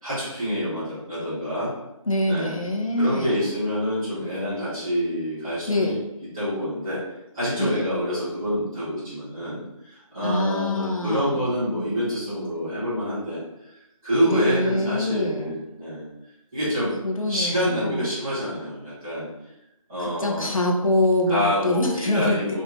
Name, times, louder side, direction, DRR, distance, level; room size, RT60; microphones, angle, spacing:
voice 1, 0.0-1.7 2.3-2.5 3.0-6.0 6.3-7.0 7.3-16.1 16.5-16.9 17.3-19.3 19.9-20.5 21.3-22.6, equal, 5° right, -14 dB, 0.8 m, -27 dB
voice 2, 2.1-3.5 5.7-6.0 7.6-7.7 10.2-11.4 14.3-15.6 17.0-18.1 20.2-22.6, left 1 dB, 70° left, 1 dB, 0.8 m, -25 dB
3.2 x 2.7 x 3.2 m, 0.88 s
figure-of-eight pair, 160°, 18 cm